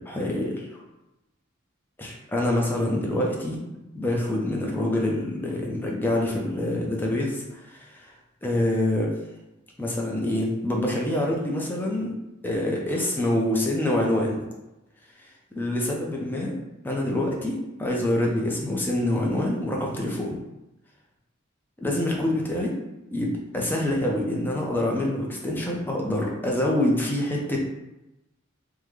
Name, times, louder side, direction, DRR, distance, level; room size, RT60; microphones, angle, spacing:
voice 1, 0.1-0.7 2.0-3.6 3.9-8.1 8.4-9.1 9.8-12.2 12.4-14.4 15.5-16.5 16.8-20.4 21.8-22.7 23.1-27.6, left 1 dB, 10° left, -2 dB, 0.5 m, -26 dB
3.6 x 2.1 x 3.1 m, 0.96 s
head